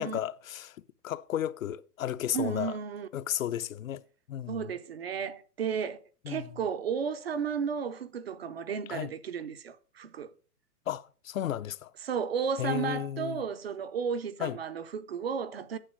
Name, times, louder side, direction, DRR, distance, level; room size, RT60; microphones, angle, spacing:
voice 1, 0.0-2.8 3.1-4.0 4.3-4.7 6.2-6.5 8.9-9.1 10.9-11.9 12.6-13.4 14.4-14.6, left 11 dB, 60° left, 0.6 m, -33 dB
voice 2, 2.3-3.1 4.5-10.3 12.0-15.8, right 6 dB, 40° right, 0.5 m, -33 dB
8.9 x 7.2 x 5.4 m
hypercardioid pair, 165°, 47 cm